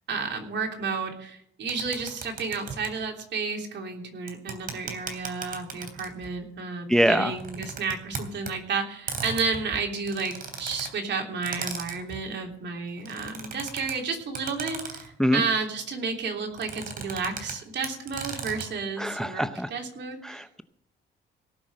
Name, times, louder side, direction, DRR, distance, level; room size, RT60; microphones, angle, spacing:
voice 1, 0.1-20.4, right 4 dB, 60° right, 2 dB, 3.3 m, -31 dB
sound 1, 1.7-2.9 4.3-6.3 7.3-8.5 9.1-10.9 11.4-12.2 13.0-13.9 14.4-15.1 16.6-17.5 17.8-18.7, right 4 dB, 45° right, 3.2 m, -36 dB
voice 2, 6.9-7.3 15.2-15.4 19.0-19.7 20.2-20.6, equal, 5° left, 11 dB, 0.7 m, -24 dB
18.0 x 6.2 x 7.6 m, 0.73 s
cardioid pair, 90°, 20 cm